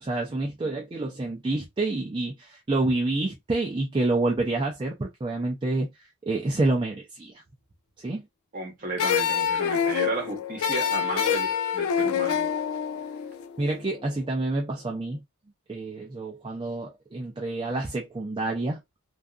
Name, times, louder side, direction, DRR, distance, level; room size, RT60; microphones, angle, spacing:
voice 1, 0.0-5.9 6.3-7.4 8.0-8.2 13.6-15.2 15.7-18.8, right 2 dB, 25° right, 0.4 m, -28 dB
voice 2, 8.5-12.5, right 2 dB, 40° right, 1.1 m, -33 dB
sound 1, 9.0-14.1, left 8 dB, 75° left, 0.3 m, -26 dB
2.7 x 2.4 x 2.3 m
head